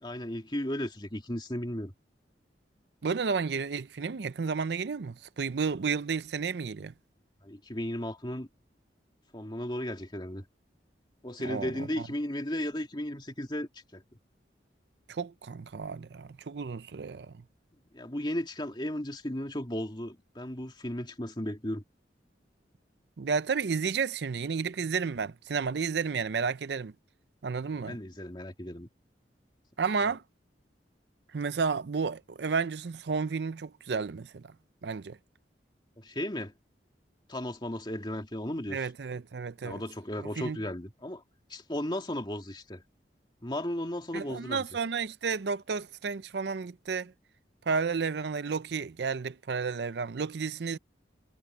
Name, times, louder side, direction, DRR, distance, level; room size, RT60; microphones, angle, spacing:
voice 1, 0.0-1.9 7.4-8.5 9.3-10.4 11.2-14.0 17.9-21.8 27.7-28.9 30.0-30.1 36.0-36.5 37.3-38.9 39.6-41.2 41.5-42.8 43.4-44.6, left 1 dB, 25° left, 2.5 m, -35 dB
voice 2, 3.0-6.9 11.4-12.1 15.1-17.3 23.2-26.9 27.4-28.0 29.8-30.2 31.3-34.5 34.8-35.2 38.7-39.8 40.4-40.6 44.1-47.1 47.7-50.8, right 5 dB, 70° right, 0.5 m, -32 dB
head